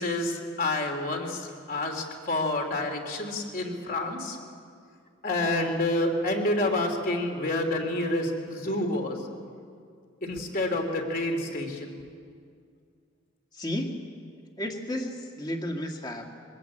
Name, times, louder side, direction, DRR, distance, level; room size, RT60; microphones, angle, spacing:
voice 1, 0.0-4.4 5.2-9.2 10.2-11.9, left 1 dB, 45° left, 3 dB, 3.0 m, -28 dB
voice 2, 13.5-13.9 14.6-16.3, left 1 dB, 20° left, 2 dB, 1.9 m, -32 dB
23.5 x 20.0 x 8.6 m, 2.2 s
head